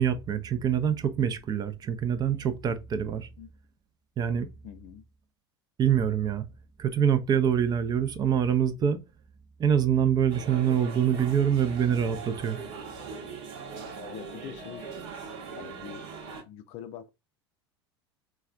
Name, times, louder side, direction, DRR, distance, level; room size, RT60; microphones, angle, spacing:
voice 1, 0.0-3.3 4.2-4.5 5.8-6.4 6.8-9.0 9.6-12.6, right 8 dB, 30° right, 0.5 m, -25 dB
voice 2, 4.6-5.0 14.1-14.9 15.6-16.0 16.5-17.1, left 10 dB, 45° left, 0.5 m, -43 dB
sound 1, 10.3-16.4, right 5 dB, 50° right, 1.0 m, -41 dB
4.1 x 2.3 x 2.4 m
figure-of-eight pair, 80°, 14 cm